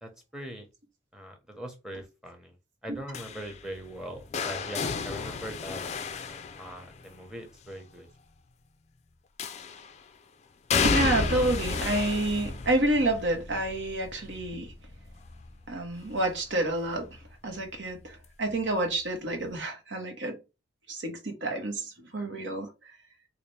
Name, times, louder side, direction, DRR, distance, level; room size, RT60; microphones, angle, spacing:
voice 1, 0.0-0.7 1.1-2.6 2.8-5.8 6.6-8.1, equal, 5° right, 0.9 m, -41 dB
sound 1, 3.1-7.2 9.4-10.0 10.7-16.5 16.9-17.3 18.5-18.6, left 5 dB, 35° left, 0.3 m, -32 dB
voice 2, 10.8-14.7 15.7-20.4 20.9-23.0, right 1 dB, 80° right, 1.2 m, -29 dB
4.1 x 2.4 x 3.2 m
head